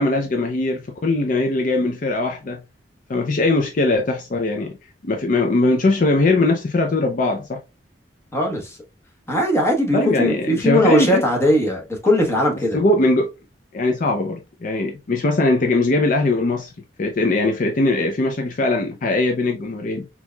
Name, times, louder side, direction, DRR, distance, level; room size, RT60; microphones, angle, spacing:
voice 1, 0.0-2.6 3.1-4.8 5.0-7.6 9.9-11.2 12.7-13.3 13.7-16.7 17.0-20.1, left 2 dB, 50° left, 0.5 m, -20 dB
voice 2, 8.3-8.8 9.3-12.8, equal, 15° left, 1.1 m, -19 dB
4.4 x 2.8 x 2.2 m
head